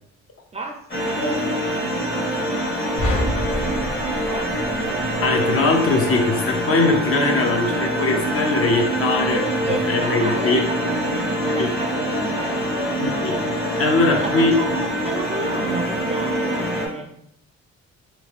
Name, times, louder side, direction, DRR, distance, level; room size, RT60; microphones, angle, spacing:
sound 1, 0.9-16.9, equal, 35° left, 1.0 m, -24 dB
sound 2, 3.0-5.4, left 1 dB, 85° left, 1.1 m, -27 dB
voice 1, 3.6-5.2 5.6-6.0 9.3-13.0 14.0-17.1, right 2 dB, 20° right, 2 dB, 0.4 m, -32 dB
voice 2, 5.2-9.4 9.9-10.7 11.6-11.7 13.0-13.4 13.8-14.9, left 3 dB, 50° left, 3 dB, 0.6 m, -21 dB
2.9 x 2.5 x 3.0 m, 0.71 s
cardioid pair, 90°, 30 cm